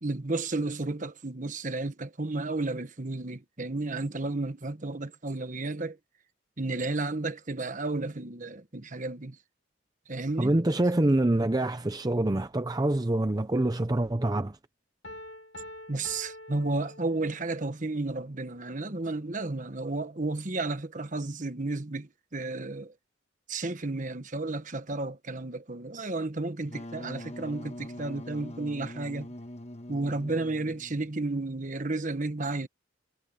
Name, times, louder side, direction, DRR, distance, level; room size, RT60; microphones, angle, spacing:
voice 1, 0.0-6.0 6.6-9.4 10.1-10.5 15.9-22.9 23.5-29.3 29.9-32.7, right 2 dB, 40° right, 1.3 m, -32 dB
voice 2, 10.4-14.6, right 1 dB, 20° right, 0.6 m, -26 dB
Piano, 15.0-17.6, left 1 dB, 70° left, 2.2 m, -45 dB
Wind instrument woodwind instrument, 26.6-31.2, left 1 dB, 35° left, 1.4 m, -43 dB
head